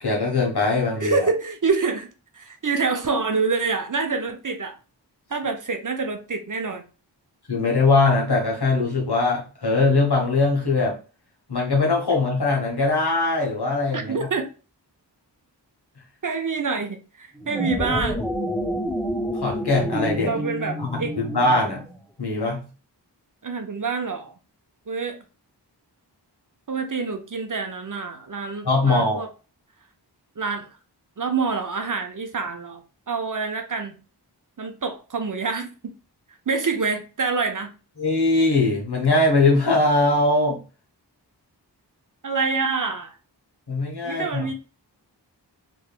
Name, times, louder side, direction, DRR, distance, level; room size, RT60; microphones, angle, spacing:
voice 1, 0.0-1.2 7.5-11.0 11.5-14.3 19.4-20.3 20.8-21.8 22.2-22.6 28.6-29.3 38.0-40.6 43.7-44.4, left 3 dB, 65° left, 1.4 m, -21 dB
voice 2, 1.0-2.1 2.3-4.8 5.3-6.8 13.9-14.5 16.2-18.3 20.2-21.1 23.4-24.3 24.9-25.2 26.7-29.3 30.4-30.7 31.2-32.8 33.1-34.0 34.6-35.9 36.5-37.7 42.2-43.2 44.0-44.5, right 4 dB, 50° right, 0.6 m, -26 dB
sound 1, 17.4-22.0, equal, ahead, 0.6 m, -28 dB
3.5 x 3.0 x 2.3 m
wide cardioid pair, 55°, 42 cm